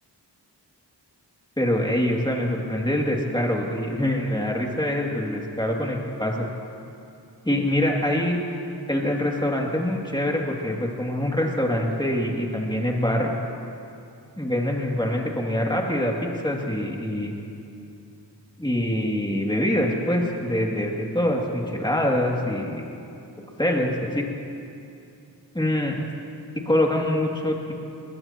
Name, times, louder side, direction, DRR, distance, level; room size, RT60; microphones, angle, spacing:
voice 1, 1.6-6.4 7.4-8.4 8.9-13.3 14.4-17.3 18.6-22.9 23.6-24.2 25.5-26.0 26.7-27.7, left 1 dB, 10° left, -1 dB, 2.6 m, -24 dB
22.0 x 21.0 x 3.0 m, 2.7 s
wide cardioid pair, 55°, 42 cm